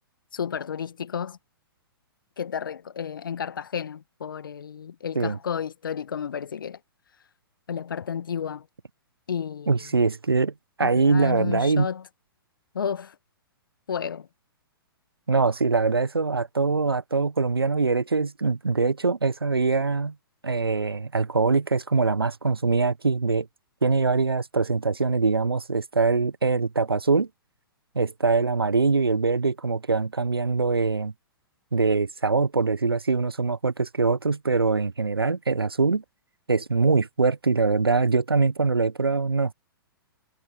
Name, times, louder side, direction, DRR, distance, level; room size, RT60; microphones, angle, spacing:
voice 1, 0.3-1.4 2.4-6.8 7.7-8.7 9.3-9.9 10.8-12.1 12.7-13.2 13.9-14.3, left 7 dB, 60° left, 1.8 m, -32 dB
voice 2, 9.7-11.9 15.3-20.1 20.4-23.5 23.8-27.3 27.9-31.1 31.7-36.0 36.5-39.5, right 4 dB, 75° right, 1.1 m, -23 dB
figure-of-eight pair, 115°, 12 cm